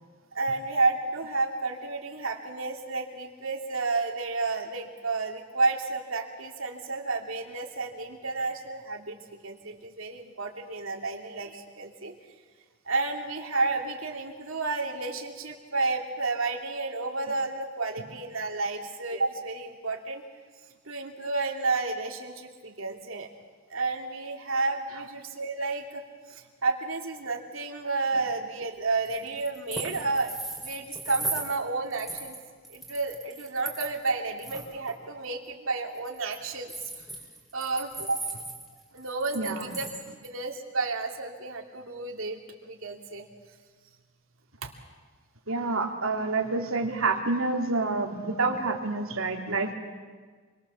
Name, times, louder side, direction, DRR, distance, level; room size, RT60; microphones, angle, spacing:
voice 1, 0.3-9.2 9.4-12.1 12.8-20.2 20.9-23.3 23.7-26.0 26.3-32.4 32.7-36.7 37.5-38.2 38.9-39.9 40.2-43.2 44.6-44.7, right 3 dB, 70° right, 3 dB, 2.9 m, -31 dB
sound 1, 29.0-31.6 31.9-34.1 34.4-35.0 36.0-40.3, right 2 dB, ahead, 4.2 m, -37 dB
voice 2, 39.3-39.7 45.5-49.7, right 3 dB, 85° right, 2 dB, 2.9 m, -28 dB
28.0 x 23.0 x 7.2 m, 1.5 s
head